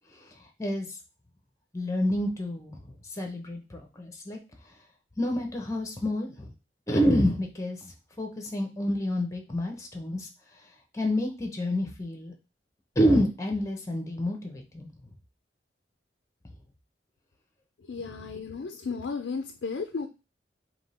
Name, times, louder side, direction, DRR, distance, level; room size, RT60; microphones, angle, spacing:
voice 1, 1.7-2.7 3.2-4.4 5.2-6.5 6.9-10.3 10.9-12.3 13.0-14.9, equal, 15° left, 3 dB, 0.9 m, -28 dB
voice 2, 17.8-20.1, left 4 dB, 85° left, 5 dB, 0.5 m, -34 dB
3.7 x 2.9 x 4.2 m, 0.30 s
head